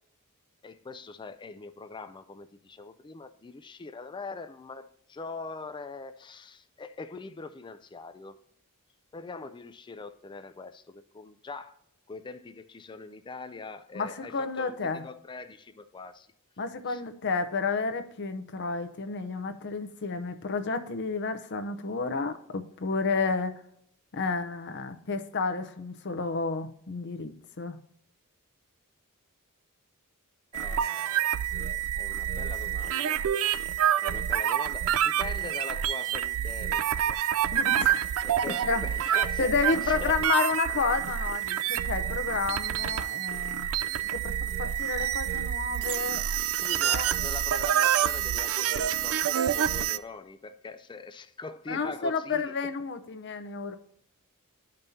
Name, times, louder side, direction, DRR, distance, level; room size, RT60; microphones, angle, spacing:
voice 1, 0.6-8.4 9.1-11.8 12.1-16.3 16.9-17.0 30.5-33.2 34.0-37.2 38.2-40.2 46.6-52.5, left 4 dB, 20° left, 0.3 m, -42 dB
voice 2, 13.9-15.0 16.6-23.5 24.1-27.8 37.5-38.1 38.6-38.8 39.4-43.7 44.1-46.2 46.8-47.0 51.7-53.8, left 4 dB, 55° left, 0.7 m, -31 dB
sound 1, 30.5-50.0, right 10 dB, 65° right, 0.4 m, -28 dB
12.0 x 5.3 x 2.8 m
head